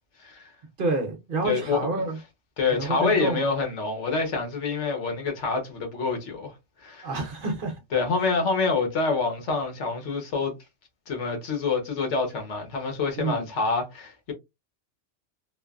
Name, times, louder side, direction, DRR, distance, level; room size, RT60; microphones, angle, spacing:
voice 1, 0.2-0.5 1.4-2.0 2.6-7.1 7.9-10.6 11.1-14.3, left 4 dB, 80° left, 1.2 m, -27 dB
voice 2, 0.8-2.2 2.7-3.4 7.0-7.8 13.2-13.5, right 3 dB, 55° right, 0.8 m, -28 dB
3.0 x 2.0 x 2.3 m
omnidirectional pair, 1.2 m